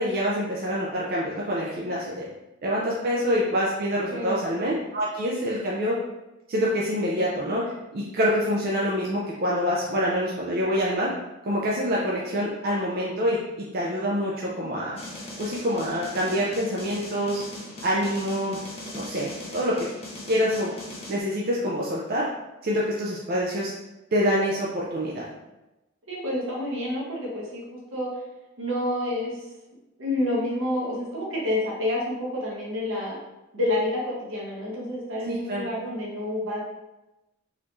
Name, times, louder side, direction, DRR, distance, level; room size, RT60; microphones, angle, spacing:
voice 1, 0.0-2.3 2.6-6.0 6.5-7.6 7.9-11.1 11.4-15.0 15.4-17.4 17.8-18.6 18.9-19.9 20.3-20.7 21.1-22.2 22.6-23.7 24.1-25.2 35.3-35.7, equal, 50° right, -5 dB, 0.5 m, -26 dB
voice 2, 4.1-4.5 26.1-28.1 28.6-29.4 30.0-33.2 33.5-36.6, left 1 dB, 75° right, -4 dB, 1.1 m, -28 dB
sound 1, 15.0-21.2, left 1 dB, 30° left, 0.6 m, -40 dB
4.0 x 2.7 x 3.0 m, 1.0 s
head